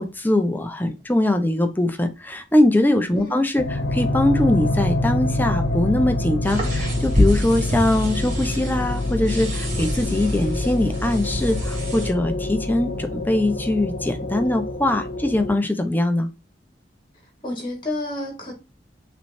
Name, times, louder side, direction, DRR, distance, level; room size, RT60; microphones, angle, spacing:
voice 1, 0.0-16.3, left 1 dB, 10° left, 0.7 m, -22 dB
sound 1, 3.6-15.5, left 1 dB, 90° left, 1.0 m, -26 dB
sound 2, 6.4-12.1, left 1 dB, 40° right, 2.4 m, -27 dB
voice 2, 17.4-18.5, left 1 dB, 25° left, 1.8 m, -30 dB
5.9 x 3.3 x 2.6 m
head